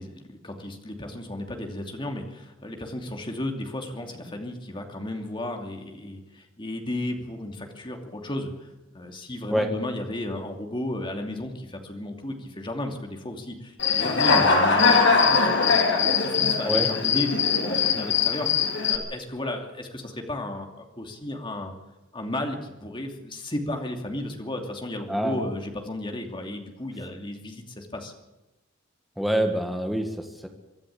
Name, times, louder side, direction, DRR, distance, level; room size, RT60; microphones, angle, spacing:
voice 1, 0.0-8.7 8.9-21.7 22.1-28.1, left 1 dB, 25° left, 3 dB, 2.7 m, -34 dB
Human voice / Cricket, 13.8-19.0, left 5 dB, 60° left, 3.0 m, -21 dB
voice 2, 25.1-25.4 29.2-30.5, equal, ahead, 3 dB, 1.9 m, -26 dB
24.0 x 12.5 x 8.6 m, 1.0 s
head